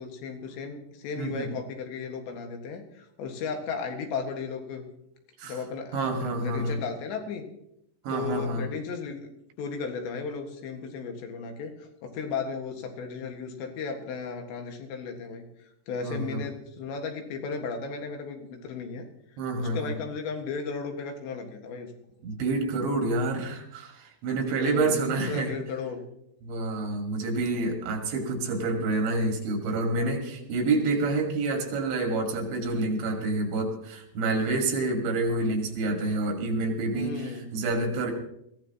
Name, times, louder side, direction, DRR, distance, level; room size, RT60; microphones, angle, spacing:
voice 1, 0.0-4.9 5.4-7.5 8.1-22.2 24.6-26.0 30.0-30.6 36.9-37.5, left 5 dB, 80° left, 4 dB, 4.0 m, -35 dB
voice 2, 1.2-1.5 5.4-5.6 5.9-6.8 8.0-8.6 16.0-16.4 19.4-19.9 22.2-25.5 26.4-37.2 37.5-38.1, right 2 dB, 90° right, 3 dB, 4.5 m, -28 dB
21.5 x 15.5 x 3.0 m, 0.77 s
omnidirectional pair, 5.1 m